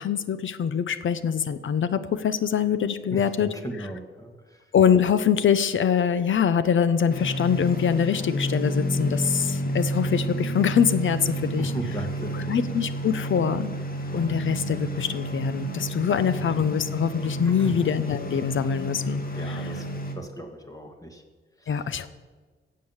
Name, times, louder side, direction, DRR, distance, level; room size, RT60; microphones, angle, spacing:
voice 1, 0.0-3.9 4.7-11.7 12.3-13.7 14.1-19.7 21.7-22.1, left 7 dB, 65° left, 13 dB, 0.8 m, -24 dB
voice 2, 3.1-4.3 11.5-12.6 16.4-16.5 17.6-17.7 19.4-19.8 20.2-21.2, right 1 dB, 15° left, 4 dB, 2.0 m, -36 dB
sound 1, 7.1-20.1, right 1 dB, 45° left, 1.8 m, -30 dB
15.0 x 7.7 x 7.3 m, 1.4 s
cardioid pair, 100°, 21 cm